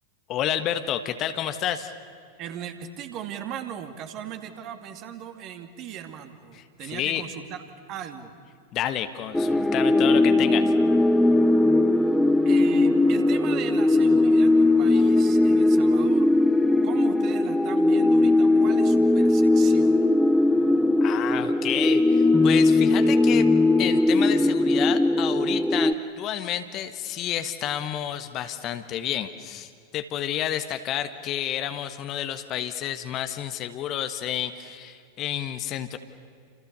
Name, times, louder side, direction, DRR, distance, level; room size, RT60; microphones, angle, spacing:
voice 1, 0.3-1.9 6.5-7.2 8.7-10.7 21.0-23.5 23.8-36.0, left 11 dB, 35° left, 9 dB, 1.5 m, -30 dB
voice 2, 2.4-7.6 7.9-8.3 12.4-16.3 16.8-20.1, right 9 dB, 40° right, 6 dB, 2.5 m, -38 dB
sound 1, 9.3-25.9, left 2 dB, 5° left, 1.0 m, -19 dB
29.5 x 28.5 x 7.0 m, 2.3 s
figure-of-eight pair, 90°, 0 cm